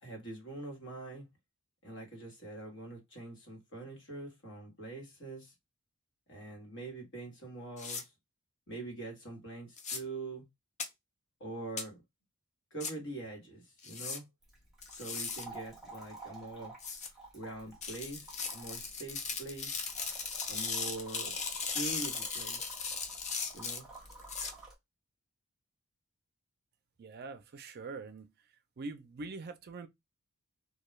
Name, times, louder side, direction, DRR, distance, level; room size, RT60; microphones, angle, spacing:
voice 1, 0.0-1.3 1.8-5.5 6.3-8.1 8.7-10.5 11.4-12.0 12.7-14.2 14.9-16.7 17.3-19.8 20.5-21.3 21.7-22.7 23.5-23.9, right 2 dB, 55° left, 1.2 m, -44 dB
sound 1, 7.8-8.0 9.8-10.0 10.8-10.9 11.8-11.9 12.8-12.9 13.8-14.2 14.8-15.4 16.8-17.1 17.8-24.5, left 5 dB, 30° left, 0.5 m, -37 dB
sound 2, 14.4-24.7, right 2 dB, ahead, 1.0 m, -52 dB
voice 2, 27.0-28.3 28.8-29.9, right 3 dB, 45° right, 0.4 m, -43 dB
2.3 x 2.2 x 3.0 m
head